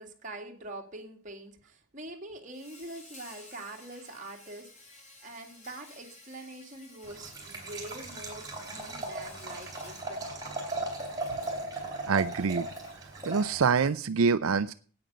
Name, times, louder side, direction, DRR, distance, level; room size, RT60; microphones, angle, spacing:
voice 1, 0.0-4.7 5.2-10.4, right 2 dB, 35° right, 1 dB, 2.2 m, -44 dB
Insect, 2.5-13.9, left 2 dB, 35° left, 3.2 m, -54 dB
Liquid, 7.0-13.9, right 2 dB, 20° right, 3.7 m, -37 dB
voice 2, 12.1-12.7 13.3-14.7, right 5 dB, 85° right, 11 dB, 0.5 m, -25 dB
9.1 x 9.0 x 8.0 m, 0.43 s
head